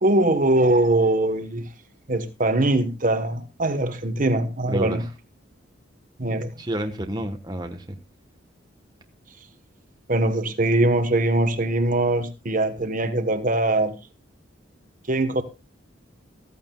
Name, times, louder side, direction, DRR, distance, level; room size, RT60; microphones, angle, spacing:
voice 1, 0.0-1.7 2.1-5.0 6.2-6.5 10.1-14.0 15.1-15.4, right 2 dB, 45° right, 1.1 m, -22 dB
voice 2, 4.7-5.1 6.6-8.0, right 1 dB, 20° right, 1.1 m, -30 dB
14.5 x 14.0 x 2.2 m
head